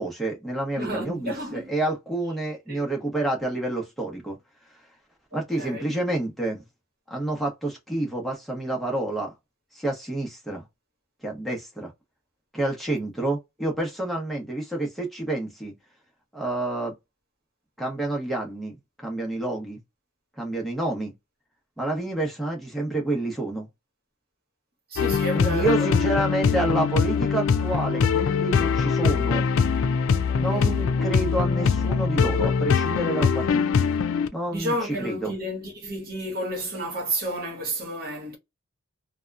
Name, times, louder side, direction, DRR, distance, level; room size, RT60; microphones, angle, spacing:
voice 1, 0.0-4.4 5.3-6.6 7.1-9.3 9.7-10.6 11.2-11.9 12.5-15.8 16.3-16.9 17.8-19.8 20.4-21.1 21.8-23.7 25.3-29.5 30.4-33.6 34.3-35.3, right 2 dB, ahead, 0.8 m, -28 dB
voice 2, 0.8-1.7 2.7-2.9 5.6-6.0 24.9-25.9 26.1-26.4 30.4-30.8 34.5-38.4, equal, 45° right, 1.1 m, -31 dB
sound 1, 25.0-34.3, left 6 dB, 65° left, 0.3 m, -22 dB
2.8 x 2.2 x 2.3 m
head